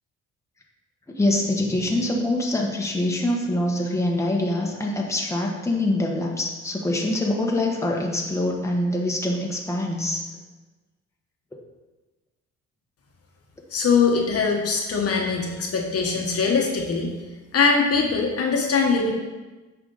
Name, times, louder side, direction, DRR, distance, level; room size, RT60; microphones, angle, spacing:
voice 1, 1.1-10.2, left 1 dB, 10° left, -1 dB, 1.2 m, -24 dB
voice 2, 13.7-17.1 17.5-19.1, left 5 dB, 50° left, 0 dB, 1.3 m, -22 dB
8.1 x 5.0 x 4.0 m, 1.2 s
cardioid pair, 90°, 30 cm